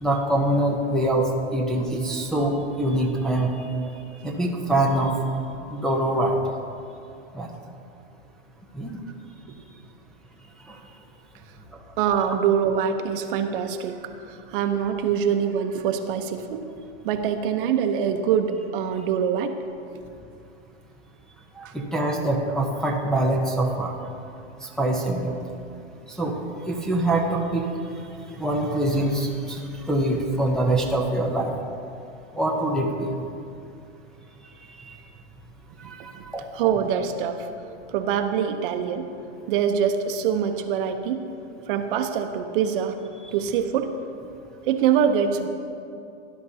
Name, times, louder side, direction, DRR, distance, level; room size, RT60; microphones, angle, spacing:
voice 1, 0.0-3.7 4.2-5.1 5.7-6.4 7.3-7.5 8.7-9.0 10.7-10.8 21.6-23.9 24.6-25.3 26.1-26.3 26.7-27.7 28.4-31.5 32.3-33.1 34.8-35.0 35.8-36.4, right 1 dB, ahead, -3 dB, 0.7 m, -24 dB
voice 2, 12.0-16.6 17.0-19.5 35.8-35.9 36.2-36.3 36.5-37.5 37.9-39.1 39.5-41.2 41.7-43.0 43.3-43.9 44.7-45.5, right 8 dB, 50° right, 7 dB, 0.9 m, -24 dB
18.0 x 11.0 x 2.8 m, 2.6 s
supercardioid pair, 145°, 34 cm